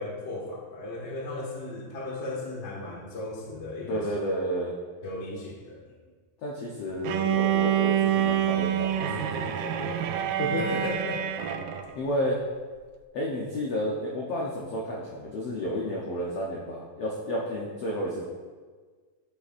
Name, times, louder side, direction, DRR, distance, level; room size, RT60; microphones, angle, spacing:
voice 1, 0.0-4.1 5.0-5.8 10.5-11.2, left 2 dB, 40° left, -3 dB, 0.9 m, -35 dB
voice 2, 3.9-4.7 6.4-9.9 10.4-10.6 11.9-12.4 13.1-18.2, equal, 75° left, -4 dB, 1.4 m, -31 dB
Bowed string instrument, 7.1-11.9, right 10 dB, 80° right, 2.1 m, -26 dB
11.5 x 6.8 x 2.6 m, 1.5 s
omnidirectional pair, 4.0 m